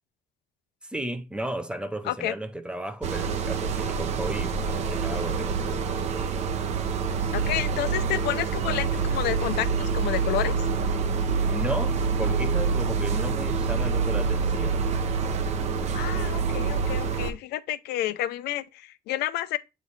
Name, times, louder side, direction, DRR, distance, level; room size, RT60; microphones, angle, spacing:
voice 1, 0.8-6.4 11.4-14.9, right 1 dB, 5° right, 0.4 m, -34 dB
voice 2, 2.0-2.3 7.3-10.6 15.9-19.6, left 13 dB, 85° left, 0.6 m, -30 dB
sound 1, 3.0-17.3, right 5 dB, 45° right, 0.7 m, -26 dB
8.3 x 3.2 x 4.0 m
cardioid pair, 180°, 16 cm